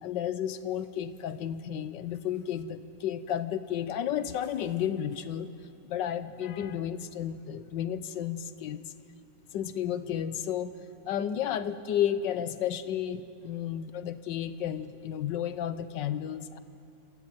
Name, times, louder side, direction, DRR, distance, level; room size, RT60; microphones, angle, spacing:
voice 1, 0.0-5.5 5.8-8.9 9.5-10.8 11.1-16.6, left 10 dB, 80° left, 13 dB, 1.5 m, -32 dB
28.0 x 15.0 x 9.1 m, 2.7 s
omnidirectional pair, 1.9 m